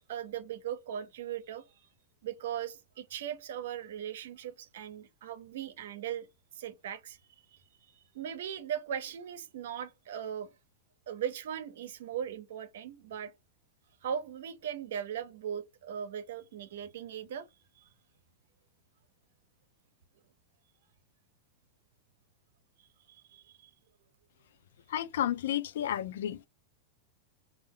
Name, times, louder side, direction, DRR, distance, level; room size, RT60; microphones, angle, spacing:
voice 1, 0.1-1.7 2.2-6.3 6.5-7.2 7.5-7.6 7.9-10.5 11.1-13.3 14.0-17.5 17.8-17.9 23.1-23.7, right 9 dB, 75° right, 0.5 m, -39 dB
voice 2, 24.9-26.5, left 11 dB, 80° left, 0.3 m, -32 dB
2.3 x 2.1 x 3.6 m
hypercardioid pair, 120°, 0 cm